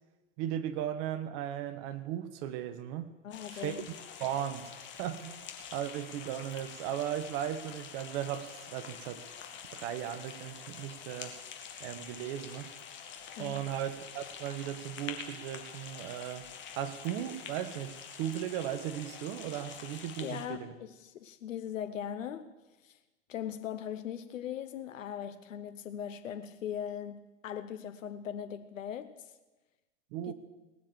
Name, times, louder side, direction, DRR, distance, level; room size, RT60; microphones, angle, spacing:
voice 1, 0.4-3.2 3.5-3.7 4.2-9.2 9.7-11.4 11.8-12.7 13.4-16.5 16.8-20.7 30.1-30.3, right 11 dB, 45° right, 1.3 m, -37 dB
voice 2, 3.2-3.9 13.4-13.6 20.2-22.6 22.8-23.0 23.3-29.3 30.2-30.3, left 9 dB, 80° left, 0.9 m, -40 dB
sound 1, 3.3-20.5, left 7 dB, 30° left, 1.9 m, -46 dB
18.5 x 7.1 x 7.6 m
hypercardioid pair, 110°, 38 cm